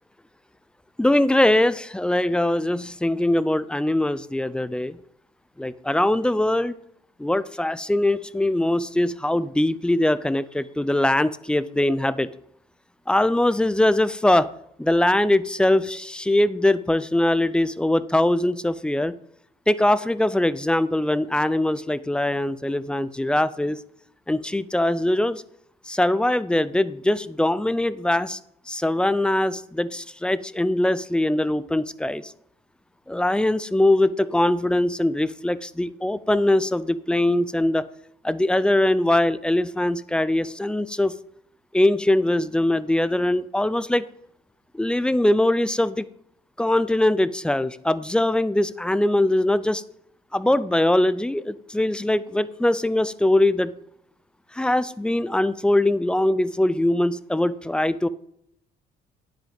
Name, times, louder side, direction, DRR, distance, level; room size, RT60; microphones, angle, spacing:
voice 1, 1.0-5.0 5.6-6.7 7.2-12.3 13.1-14.5 14.8-19.2 19.7-23.8 24.3-25.4 25.9-28.4 28.7-32.2 33.1-37.8 38.2-41.1 41.7-44.0 44.7-46.1 46.6-49.8 50.3-53.7 54.6-58.1, left 1 dB, 5° left, 15 dB, 0.4 m, -22 dB
10.0 x 7.8 x 3.5 m, 0.73 s
cardioid pair, 110°, 17 cm